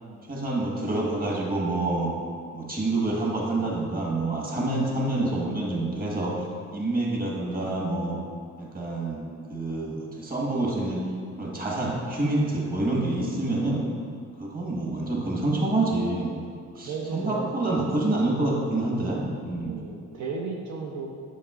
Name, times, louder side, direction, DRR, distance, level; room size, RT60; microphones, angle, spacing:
voice 1, 0.3-2.1 2.5-6.3 6.7-8.2 8.6-9.2 9.5-11.0 11.4-13.8 14.4-16.4 16.8-19.8, right 2 dB, 30° right, -3 dB, 1.4 m, -27 dB
voice 2, 13.1-13.5 16.8-17.5 19.6-21.1, right 4 dB, 75° right, -1 dB, 0.7 m, -35 dB
7.0 x 5.9 x 2.4 m, 2.3 s
cardioid pair, 90°, 30 cm